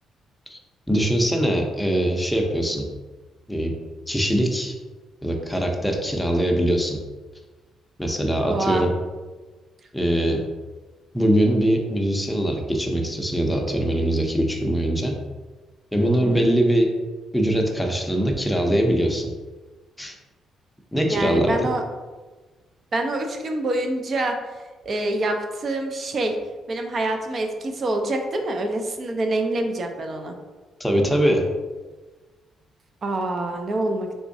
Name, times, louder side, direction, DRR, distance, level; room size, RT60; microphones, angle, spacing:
voice 1, 0.9-2.8 3.5-3.7 4.1-4.7 5.2-7.0 8.0-8.9 9.9-10.4 11.1-15.1 15.9-16.9 17.3-19.3 20.0-20.1 20.9-21.5 30.8-31.5, right 1 dB, 5° left, 1 dB, 0.6 m, -22 dB
voice 2, 8.4-8.8 16.0-16.4 21.1-21.8 22.9-24.4 24.8-26.3 26.7-30.3 33.0-34.1, right 2 dB, 45° right, 4 dB, 0.5 m, -26 dB
3.5 x 3.0 x 2.6 m, 1.3 s
cardioid pair, 90°, 0 cm